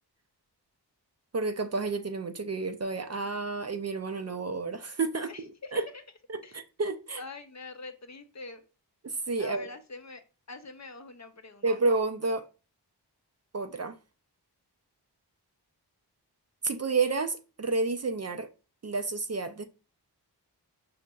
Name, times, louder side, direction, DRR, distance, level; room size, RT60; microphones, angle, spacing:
voice 1, 1.3-5.3 5.7-5.9 6.5-7.2 9.0-9.7 11.6-12.5 13.5-14.0 16.6-18.5 18.8-19.6, right 3 dB, 40° right, 0.4 m, -30 dB
voice 2, 5.2-6.0 6.4-6.6 7.2-8.6 9.4-10.2 10.5-11.7, left 3 dB, 40° left, 0.5 m, -44 dB
5.2 x 2.8 x 2.3 m
wide cardioid pair, 45°, 42 cm